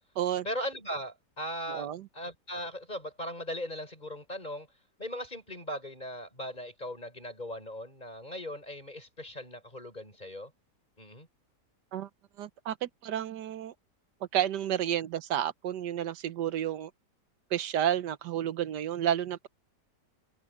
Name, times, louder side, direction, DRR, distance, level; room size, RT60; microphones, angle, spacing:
voice 1, 0.4-4.7 5.0-10.5 11.0-11.3, equal, 25° left, 5.8 m, -38 dB
voice 2, 1.7-2.0 11.9-12.1 12.4-13.7 14.3-16.9 17.5-19.5, right 10 dB, 80° right, 1.4 m, -31 dB
omnidirectional pair, 1.8 m